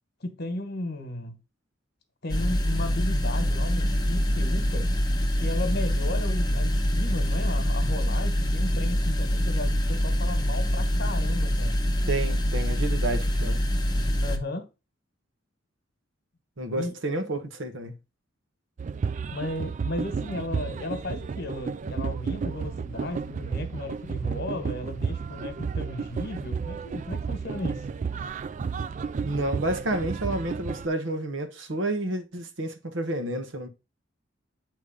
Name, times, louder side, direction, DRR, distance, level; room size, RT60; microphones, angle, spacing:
voice 1, 0.2-1.4 2.2-4.9 5.4-11.8 14.2-14.7 16.8-16.9 19.3-27.8, left 2 dB, 55° left, 1.4 m, -35 dB
sound 1, 2.3-14.4, equal, 20° left, 1.0 m, -25 dB
voice 2, 12.1-13.6 16.6-17.9 29.2-33.7, right 1 dB, 70° right, 1.1 m, -30 dB
sound 2, 18.8-30.9, right 5 dB, 40° right, 0.3 m, -32 dB
8.5 x 3.1 x 5.0 m
head